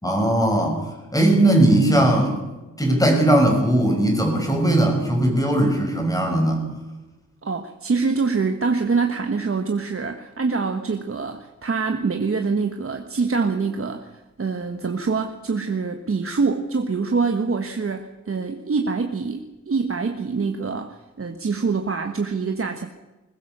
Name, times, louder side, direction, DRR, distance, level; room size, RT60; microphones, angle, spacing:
voice 1, 0.0-0.8 1.1-2.4 2.8-6.6, right 1 dB, 10° left, 2 dB, 5.8 m, -18 dB
voice 2, 7.4-22.9, right 4 dB, 50° right, 5 dB, 1.4 m, -25 dB
21.0 x 20.5 x 6.7 m, 1.1 s
wide cardioid pair, 130°, 29 cm